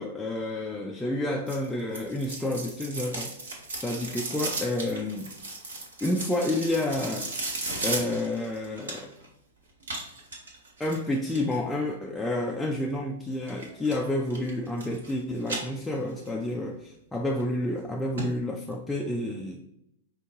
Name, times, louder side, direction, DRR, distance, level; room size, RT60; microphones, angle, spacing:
voice 1, 0.0-5.3 6.0-7.3 7.8-9.1 10.8-19.6, left 1 dB, 5° left, -2 dB, 0.4 m, -30 dB
sound 1, 1.5-9.3 9.8-11.6 13.5-14.0 14.3-15.1 15.4-16.3 16.7-16.8 17.4-17.5 17.8-17.9 18.2-18.3 18.6-18.7, right 2 dB, 70° right, 1.2 m, -35 dB
5.1 x 2.2 x 3.5 m, 0.80 s
figure-of-eight pair, 105°, 0 cm